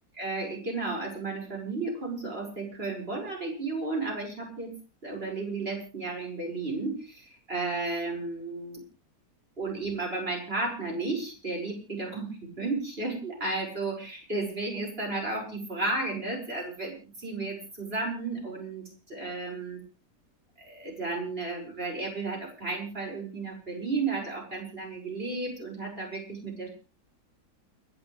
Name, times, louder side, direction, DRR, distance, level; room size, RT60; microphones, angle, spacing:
voice 1, 0.2-4.7 5.0-8.8 9.6-19.8 20.6-26.7, right 3 dB, 35° right, 0 dB, 6.0 m, -33 dB
30.0 x 11.0 x 3.3 m, 0.34 s
omnidirectional pair, 1.7 m